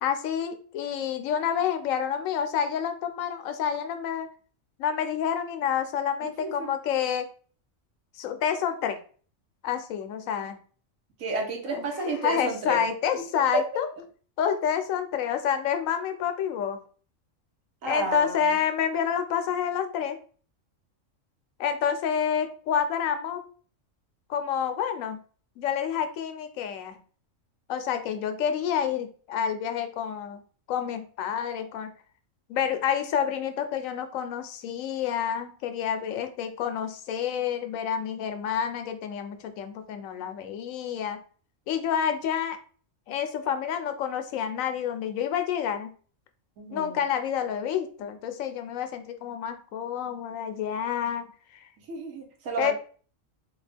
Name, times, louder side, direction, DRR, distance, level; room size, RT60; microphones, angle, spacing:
voice 1, 0.0-4.3 4.8-7.3 8.2-9.0 9.6-10.6 11.7-11.9 12.2-13.9 14.4-16.8 17.8-20.2 21.6-23.4 24.3-25.2 25.6-27.0 27.7-30.4 30.7-31.9 32.5-41.2 41.7-42.6 43.1-45.9 46.7-51.3 52.6-52.7, left 8 dB, 90° left, 8 dB, 1.0 m, -28 dB
voice 2, 6.2-6.7 11.2-12.9 13.1-13.8 17.8-18.6 46.6-47.0 51.9-52.7, right 1 dB, 85° right, 2 dB, 1.3 m, -31 dB
3.5 x 2.3 x 3.3 m, 0.42 s
omnidirectional pair, 1.3 m